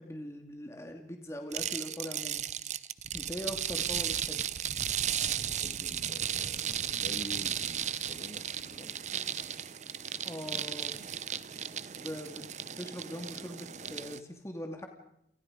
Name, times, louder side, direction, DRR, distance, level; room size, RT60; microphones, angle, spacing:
voice 1, 0.0-2.4 3.1-4.4 10.2-11.0 12.0-14.9, equal, 15° left, 4 dB, 2.3 m, -41 dB
sound 1, 1.5-14.2, right 9 dB, 40° right, 0.9 m, -35 dB
voice 2, 5.1-9.0, left 1 dB, 45° left, 6 dB, 2.7 m, -48 dB
29.5 x 28.5 x 5.1 m, 0.79 s
head